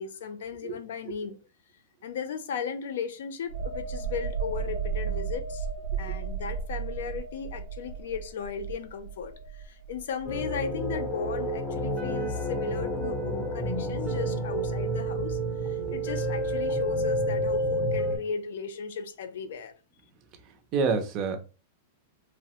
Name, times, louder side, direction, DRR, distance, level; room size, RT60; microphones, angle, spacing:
voice 1, 0.0-1.4 2.0-5.7 6.0-19.7, left 6 dB, 70° left, 0.5 m, -36 dB
sound 1, 3.5-10.9 11.3-11.5, right 6 dB, 80° right, 0.8 m, -34 dB
sound 2, 10.2-18.2, right 1 dB, 10° left, 0.6 m, -29 dB
voice 2, 20.4-21.4, right 5 dB, 30° right, 0.5 m, -29 dB
3.0 x 2.0 x 2.9 m
supercardioid pair, 165°, 0 cm